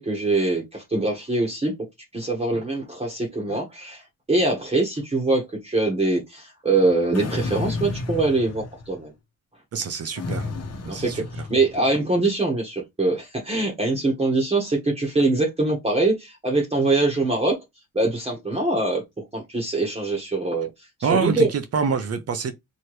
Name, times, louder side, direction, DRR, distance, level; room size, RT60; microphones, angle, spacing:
voice 1, 0.0-1.7 2.1-4.0 4.3-9.1 10.9-17.6 17.9-20.7 21.0-21.5, right 2 dB, 20° right, 1.2 m, -23 dB
sound 1, 7.1-9.0 10.2-12.0, left 3 dB, 50° left, 1.1 m, -32 dB
voice 2, 9.7-10.5 10.8-11.2 21.0-22.5, right 5 dB, 50° right, 0.7 m, -25 dB
4.6 x 3.1 x 3.1 m
wide cardioid pair, 140°, 32 cm